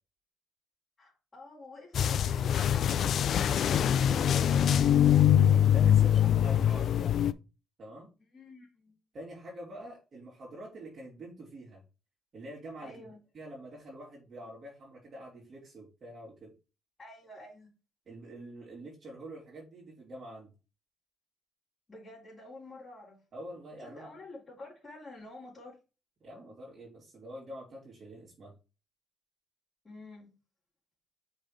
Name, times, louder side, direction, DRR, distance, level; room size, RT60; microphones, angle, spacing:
voice 1, 1.0-5.7 6.0-7.0 8.3-9.0 12.8-13.2 17.0-17.7 21.9-23.2 23.8-25.8 29.8-30.3, left 2 dB, 25° left, 3.8 m, -49 dB
sound 1, 1.9-7.3, left 9 dB, 65° left, 0.4 m, -24 dB
voice 2, 4.0-4.7 5.7-7.1 7.8-8.1 9.1-11.8 12.3-13.1 13.3-16.5 18.1-20.5 23.3-24.1 26.2-28.5, right 1 dB, 45° right, 3.3 m, -46 dB
5.7 x 5.3 x 3.3 m
cardioid pair, 90°, 0 cm